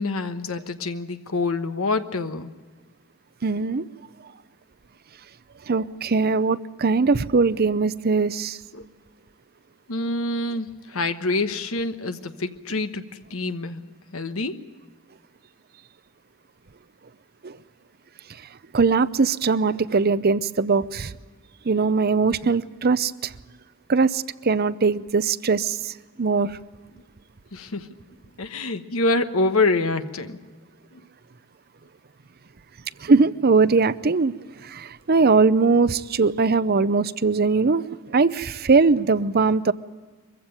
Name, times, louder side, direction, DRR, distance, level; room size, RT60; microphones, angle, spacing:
voice 1, 0.0-2.5 8.7-8.9 9.9-14.6 27.5-27.9 28.4-30.4 30.9-31.0, left 3 dB, 80° left, 9 dB, 1.2 m, -26 dB
voice 2, 3.4-3.8 5.7-8.6 17.4-17.5 18.7-21.1 21.7-23.3 23.9-26.5 33.0-34.3 34.6-39.7, right 4 dB, 45° right, 16 dB, 0.6 m, -21 dB
23.0 x 15.5 x 9.0 m, 1.4 s
head